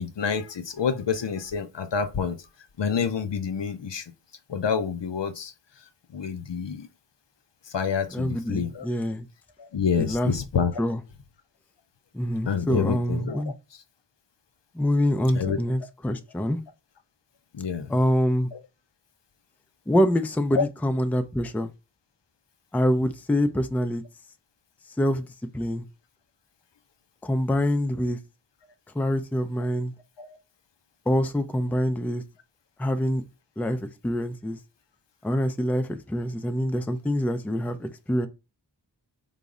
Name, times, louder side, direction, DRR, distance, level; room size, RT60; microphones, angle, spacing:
voice 1, 0.0-2.4 2.8-4.1 4.5-6.9 7.6-8.9 9.6-10.8 12.5-13.4 15.3-15.6 17.5-17.9 18.5-18.6 20.5-20.6 30.2-30.4, left 6 dB, 70° left, 0.6 m, -28 dB
voice 2, 8.1-9.3 10.0-10.3 10.8-11.0 12.1-13.5 14.7-16.6 17.9-18.5 19.9-21.7 22.7-24.0 25.0-25.3 25.5-25.9 27.2-28.2 28.9-29.9 31.1-32.2 32.8-33.2 33.6-34.6 35.2-38.3, equal, 5° left, 0.4 m, -25 dB
4.0 x 2.0 x 3.6 m
wide cardioid pair, 40°, 44 cm